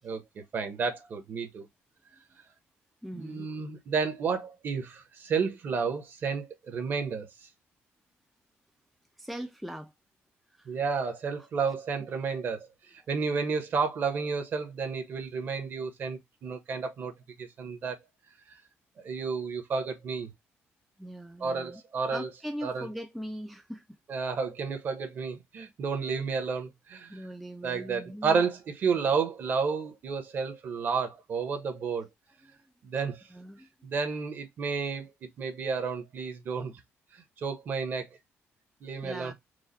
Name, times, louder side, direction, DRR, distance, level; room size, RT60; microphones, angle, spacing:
voice 1, 0.0-1.7 3.1-7.3 10.7-17.1 17.4-18.0 18.5-18.6 19.0-20.3 21.4-22.3 22.6-22.9 24.1-27.2 27.6-32.1 32.8-33.2 33.8-36.7 37.1-38.1 38.8-39.3, right 5 dB, 45° right, 1.1 m, -31 dB
voice 2, 3.0-3.5 9.2-9.9 10.5-10.7 11.4-11.7 21.0-21.8 22.1-24.0 27.1-28.4 32.4-32.5 33.3-33.7 39.0-39.3, equal, ahead, 0.4 m, -40 dB
4.7 x 2.2 x 4.0 m
cardioid pair, 170°, 5 cm